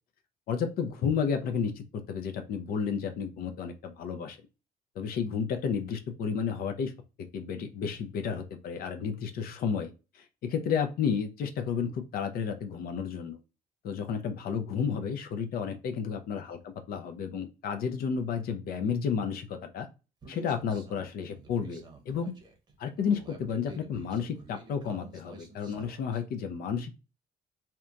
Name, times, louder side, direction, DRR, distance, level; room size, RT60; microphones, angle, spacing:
voice 1, 0.5-4.4 5.0-6.9 7.3-13.4 13.8-19.9 20.3-22.3 22.8-27.0, left 6 dB, 60° left, 7 dB, 0.5 m, -32 dB
Human voice, 20.2-26.2, right 2 dB, 25° right, 0.8 m, -50 dB
2.8 x 2.2 x 2.4 m, 0.30 s
cardioid pair, 110°, 17 cm